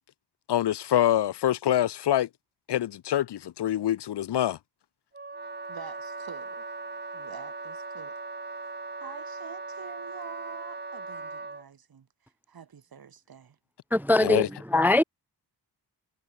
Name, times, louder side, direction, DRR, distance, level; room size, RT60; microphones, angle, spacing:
voice 1, 0.5-2.3 2.7-4.6 14.2-14.5, left 12 dB, 80° left, 0.9 m, -25 dB
Wind instrument woodwind instrument, 5.1-11.7, right 3 dB, 25° right, 4.4 m, -39 dB
voice 2, 5.7-6.7 7.1-8.2 8.6-8.7 9.0-13.6, right 7 dB, 60° right, 4.4 m, -47 dB
voice 3, 13.9-15.0, left 2 dB, 5° right, 0.3 m, -22 dB
wide cardioid pair, 125°, 41 cm